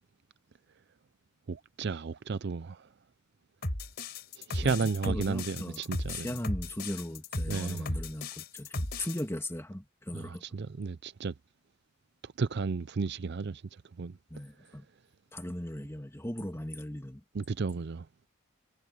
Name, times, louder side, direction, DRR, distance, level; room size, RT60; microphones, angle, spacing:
voice 1, 1.5-2.9 4.4-6.3 7.5-7.9 10.1-11.3 12.2-13.6 14.0-14.2 17.3-18.1, right 4 dB, 55° right, 0.5 m, -33 dB
sound 1, 3.6-9.2, left 2 dB, 50° left, 4.8 m, -35 dB
voice 2, 4.6-5.8 6.1-10.4 14.3-14.9 15.3-17.2, left 1 dB, 10° left, 2.5 m, -38 dB
head